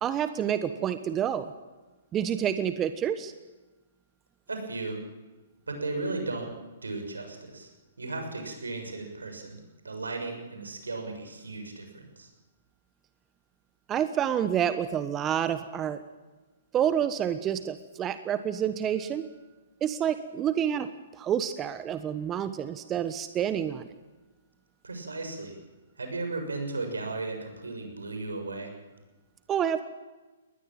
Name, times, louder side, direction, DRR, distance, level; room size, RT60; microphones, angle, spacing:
voice 1, 0.0-1.5 2.1-3.3 13.9-16.0 16.7-19.3 19.8-20.9 21.1-23.9 29.5-29.8, right 9 dB, 20° right, 12 dB, 1.2 m, -28 dB
voice 2, 4.5-5.0 5.7-6.5 6.8-7.7 8.0-9.6 9.8-12.3 24.8-25.6 26.0-28.7, right 3 dB, 85° right, 5 dB, 6.7 m, -35 dB
21.0 x 19.5 x 9.0 m, 1.2 s
hypercardioid pair, 125°, 0 cm